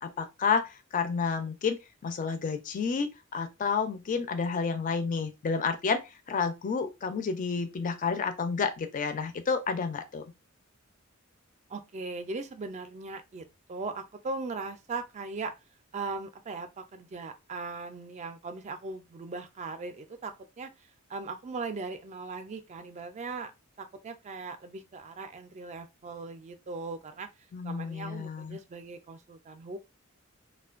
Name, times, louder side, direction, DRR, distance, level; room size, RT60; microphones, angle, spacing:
voice 1, 0.0-6.0 6.3-10.2 27.5-28.6, left 5 dB, 40° left, 0.4 m, -30 dB
voice 2, 11.7-15.5 15.9-20.7 21.1-23.5 23.8-27.3 27.6-29.8, right 3 dB, 35° right, 0.3 m, -39 dB
2.5 x 2.1 x 2.4 m
head